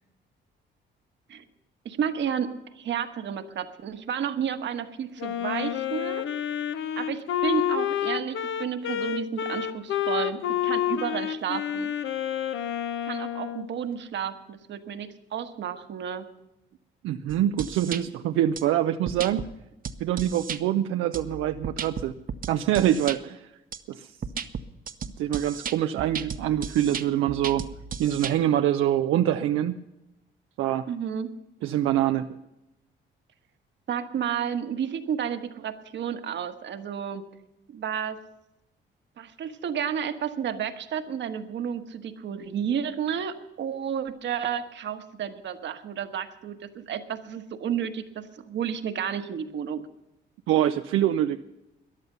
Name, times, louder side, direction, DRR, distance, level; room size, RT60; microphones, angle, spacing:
voice 1, 1.8-6.2 7.0-11.9 13.0-16.3 19.4-19.5 30.9-31.3 33.9-37.2 37.7-38.2 39.2-49.8, right 8 dB, 65° right, 9 dB, 1.3 m, -31 dB
Wind instrument woodwind instrument, 5.2-13.7, left 11 dB, 80° left, 1.0 m, -29 dB
voice 2, 17.0-19.5 20.0-22.1 22.5-23.5 23.9-24.1 25.2-27.7 28.0-29.8 30.6-30.9 31.6-32.4 50.5-51.4, right 11 dB, 90° right, 8 dB, 0.5 m, -25 dB
sound 1, 17.3-18.0 18.6-18.7 19.1-19.5 19.8-20.6 21.1-23.2 23.7-23.8 24.2-28.3, right 6 dB, 45° right, 0.8 m, -35 dB
14.0 x 10.5 x 6.7 m, 0.92 s
cardioid pair, 90°, 20 cm